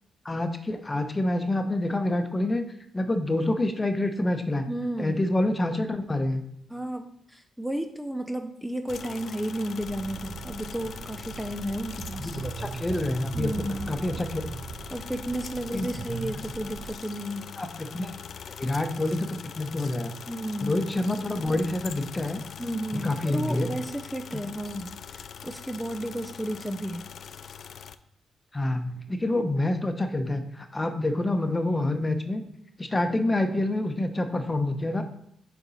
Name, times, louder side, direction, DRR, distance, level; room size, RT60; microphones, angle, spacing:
voice 1, 0.2-2.6 2.9-4.6 5.0-6.4 12.2-13.5 13.9-14.6 15.7-15.9 17.6-18.1 18.6-20.1 20.6-22.4 22.9-23.7 24.3-24.4 28.5-32.4 32.8-35.0, left 1 dB, 25° left, 7 dB, 1.0 m, -27 dB
voice 2, 4.7-5.3 6.7-12.4 13.3-13.9 14.9-17.5 20.3-20.8 22.6-27.0, right 1 dB, 5° right, 5 dB, 0.6 m, -33 dB
sound 1, 8.9-28.0, left 7 dB, 65° left, 0.4 m, -42 dB
sound 2, 9.8-17.0, right 6 dB, 65° right, 0.4 m, -39 dB
6.8 x 4.4 x 4.2 m, 0.71 s
supercardioid pair, 60°, 0 cm